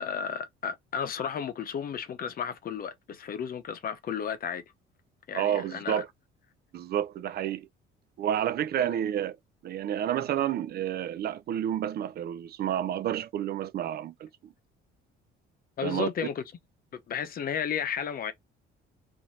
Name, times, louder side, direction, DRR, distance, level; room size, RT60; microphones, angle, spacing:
voice 1, 0.0-4.6 5.3-6.0 8.8-9.0 15.8-16.4 16.9-18.3, left 7 dB, 45° left, 0.8 m, -33 dB
voice 2, 5.3-6.1 6.7-7.7 8.2-9.4 9.6-14.3 15.8-16.1, right 10 dB, 50° right, 0.4 m, -30 dB
3.1 x 2.6 x 4.0 m
cardioid pair, 125°, 21 cm